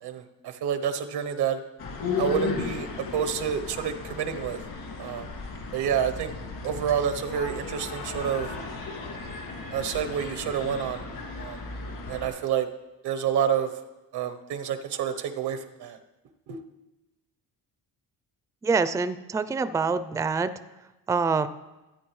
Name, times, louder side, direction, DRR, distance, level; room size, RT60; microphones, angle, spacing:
voice 1, 0.0-1.6 2.2-4.6 5.0-5.3 5.7-6.3 6.6-8.5 9.7-11.0 11.4-11.6 12.1-12.7 13.0-13.7 14.1-16.0 16.5-16.6, right 8 dB, 80° right, 8 dB, 0.9 m, -28 dB
sound 1, 1.8-12.3, left 4 dB, 70° left, 2.3 m, -35 dB
voice 2, 18.6-20.5 21.1-21.5, right 4 dB, 10° right, 13 dB, 0.4 m, -25 dB
14.5 x 8.8 x 3.2 m, 1.1 s
cardioid pair, 75°, 39 cm